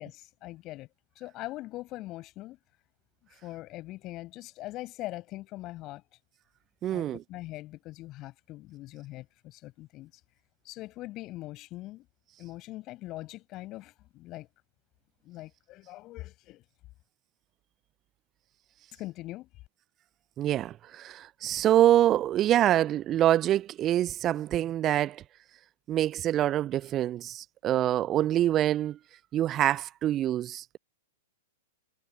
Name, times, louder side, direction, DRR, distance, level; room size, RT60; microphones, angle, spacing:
voice 1, 0.0-2.6 3.3-6.0 6.9-10.2 10.6-12.1 12.4-14.5 15.2-16.6 19.0-19.5, left 17 dB, 30° left, 6.1 m, -42 dB
voice 2, 6.8-7.2 20.4-25.2 25.9-29.0 29.3-30.8, right 12 dB, 25° right, 0.3 m, -25 dB
figure-of-eight pair, 105°, 0 cm